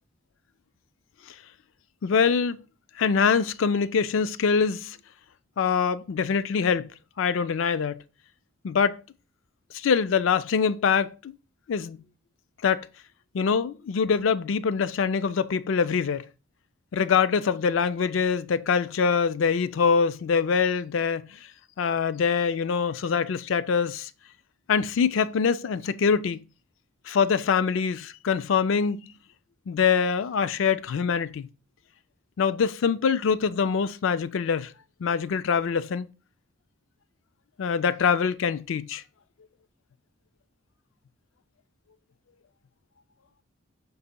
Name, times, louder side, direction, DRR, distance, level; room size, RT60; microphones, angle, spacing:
voice 1, 2.0-2.6 3.0-5.0 5.6-8.0 8.6-9.0 9.7-11.4 11.7-12.0 12.6-12.9 13.3-16.3 16.9-21.4 21.8-24.1 24.7-26.4 27.1-29.0 29.7-31.5 32.4-34.7 35.0-36.1 37.6-39.0, left 6 dB, 65° left, 0.4 m, -24 dB
11.0 x 4.0 x 2.2 m
head